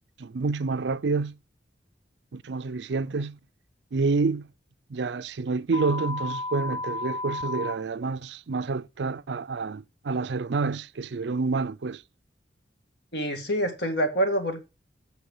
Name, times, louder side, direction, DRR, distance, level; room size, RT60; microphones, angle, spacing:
voice 1, 0.2-1.4 2.3-3.4 3.9-4.5 4.9-12.0, right 4 dB, 75° right, 0.5 m, -28 dB
sound 1, 5.7-7.7, left 2 dB, 20° left, 1.6 m, -32 dB
voice 2, 13.1-14.7, equal, 65° left, 2.1 m, -26 dB
8.6 x 6.3 x 5.5 m
head